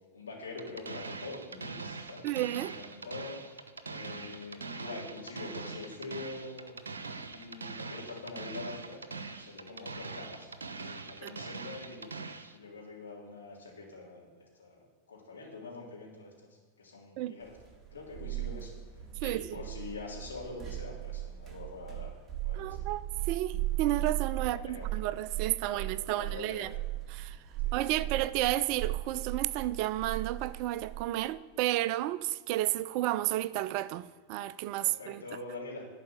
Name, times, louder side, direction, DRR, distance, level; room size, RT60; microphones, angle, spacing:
voice 1, 0.1-2.3 2.7-12.1 12.5-14.8 15.1-16.3 16.8-17.5 17.9-22.1 22.4-22.8 24.6-24.9 25.7-26.7 27.6-28.0 34.8-35.8, left 3 dB, 70° left, 3.1 m, -45 dB
sound 1, 0.6-12.6, right 4 dB, 75° right, 0.8 m, -42 dB
voice 2, 2.2-2.8 11.2-11.3 17.2-17.4 19.2-19.6 22.5-26.7 27.1-27.4 27.7-35.2, right 15 dB, 45° right, 0.4 m, -32 dB
sound 2, 17.6-31.0, right 15 dB, 15° right, 1.6 m, -37 dB
11.0 x 5.0 x 8.6 m
figure-of-eight pair, 90°, 0 cm